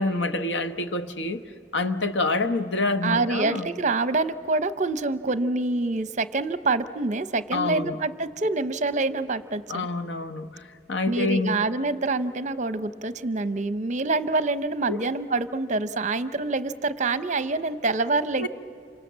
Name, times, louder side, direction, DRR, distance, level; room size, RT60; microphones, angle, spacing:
voice 1, 0.0-1.4 1.7-3.7 7.5-8.0 9.7-10.5 10.9-11.6 14.9-15.0 18.4-18.5, left 2 dB, 85° left, 1.2 m, -26 dB
voice 2, 3.0-9.9 11.1-18.5, right 3 dB, 40° right, 0.8 m, -26 dB
28.5 x 26.0 x 7.4 m
head